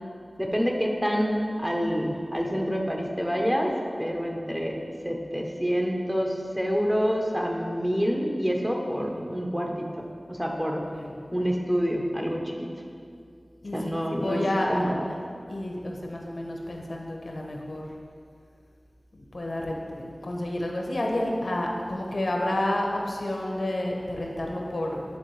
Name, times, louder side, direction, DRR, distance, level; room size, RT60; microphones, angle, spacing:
voice 1, 0.4-3.7 4.0-4.8 5.0-9.8 10.3-10.8 11.3-12.7 13.7-14.4 14.7-15.0, equal, 5° right, 0 dB, 0.9 m, -27 dB
voice 2, 8.9-9.3 10.7-11.2 13.6-13.9 14.2-17.8 19.1-25.0, left 1 dB, 70° left, 0 dB, 0.8 m, -30 dB
10.0 x 3.6 x 3.2 m, 2.2 s
wide cardioid pair, 40°, 0 cm